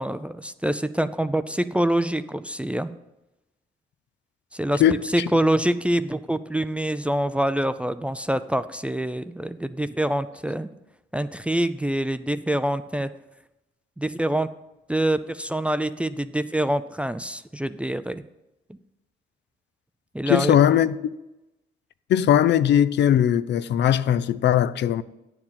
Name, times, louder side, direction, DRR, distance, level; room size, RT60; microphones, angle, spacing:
voice 1, 0.0-2.9 4.5-4.8 5.1-10.7 11.1-13.1 14.0-14.5 14.9-18.2 20.1-20.6, right 1 dB, 5° right, 0.4 m, -25 dB
voice 2, 4.8-5.3 20.3-20.9 22.1-25.0, left 10 dB, 65° left, 0.5 m, -19 dB
9.5 x 4.7 x 7.3 m
cardioid pair, 90°, 20 cm